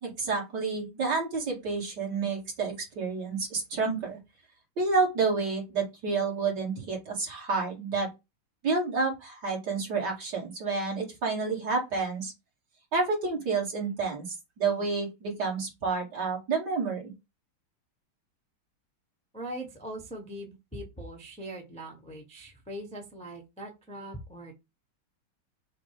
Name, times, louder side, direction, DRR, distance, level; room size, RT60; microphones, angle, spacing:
voice 1, 0.0-4.2 4.8-8.1 8.6-12.3 12.9-17.0, right 4 dB, 55° right, -2 dB, 2.6 m, -29 dB
voice 2, 19.3-24.5, right 1 dB, 5° left, 0 dB, 1.0 m, -41 dB
7.4 x 2.6 x 4.9 m, 0.24 s
omnidirectional pair, 2.3 m